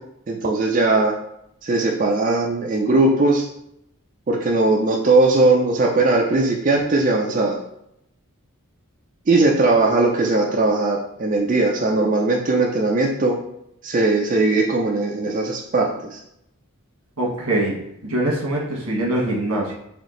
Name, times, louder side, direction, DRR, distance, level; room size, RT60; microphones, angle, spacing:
voice 1, 0.3-1.1 1.6-3.5 4.3-7.6 9.3-13.4 13.8-16.2, right 2 dB, 35° right, -1 dB, 0.4 m, -19 dB
voice 2, 17.2-19.7, right 1 dB, 85° right, -2 dB, 1.2 m, -23 dB
3.5 x 2.7 x 3.7 m, 0.77 s
head